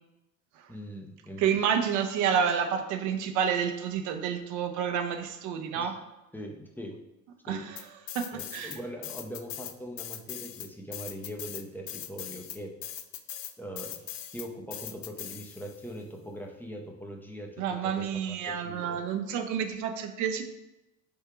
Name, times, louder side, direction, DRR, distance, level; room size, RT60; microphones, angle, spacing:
voice 1, 0.7-1.6 5.7-5.9 6.3-7.0 7.5-7.6 8.3-12.7 13.6-14.1 14.3-19.0, equal, 5° left, 1 dB, 0.6 m, -41 dB
voice 2, 1.4-6.0 7.4-7.9 8.1-8.8 17.6-20.4, right 7 dB, 45° right, 6 dB, 0.6 m, -29 dB
sound 1, 7.8-8.8 9.0-15.9, left 11 dB, 65° left, 0.5 m, -40 dB
3.6 x 2.7 x 4.7 m, 0.93 s
hypercardioid pair, 65°, 42 cm